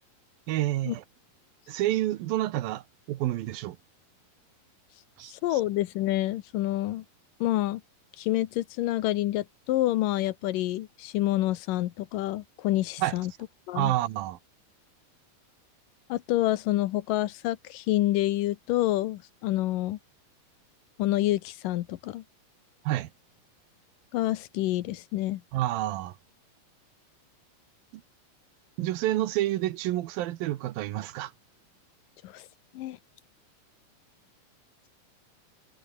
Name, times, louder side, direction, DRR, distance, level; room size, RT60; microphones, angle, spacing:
voice 1, 0.5-1.0 1.7-3.8 5.2-5.6 13.0-13.1 13.8-14.4 22.9-23.1 25.5-26.2 28.8-31.3, right 14 dB, 85° right, 2.9 m, -29 dB
voice 2, 5.3-7.0 7.4-7.8 8.2-13.3 13.7-13.9 16.1-20.0 21.0-22.2 24.1-25.4 32.2-32.5 32.7-33.0, left 15 dB, 75° left, 2.5 m, -28 dB
omnidirectional pair, 4.0 m